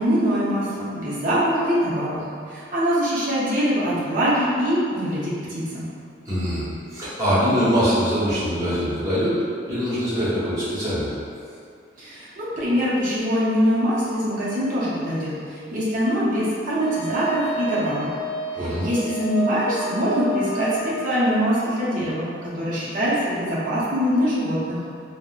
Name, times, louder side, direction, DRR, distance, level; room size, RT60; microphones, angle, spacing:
voice 1, 0.0-5.9 12.0-18.2 18.6-24.8, equal, 45° right, -9 dB, 0.6 m, -23 dB
voice 2, 6.2-6.6 6.9-9.4 9.7-11.1 18.5-18.9, equal, 20° right, -12 dB, 1.0 m, -23 dB
Wind instrument woodwind instrument, 16.8-21.2, equal, 75° left, 0.3 m, -30 dB
3.6 x 2.1 x 2.3 m, 2.4 s
head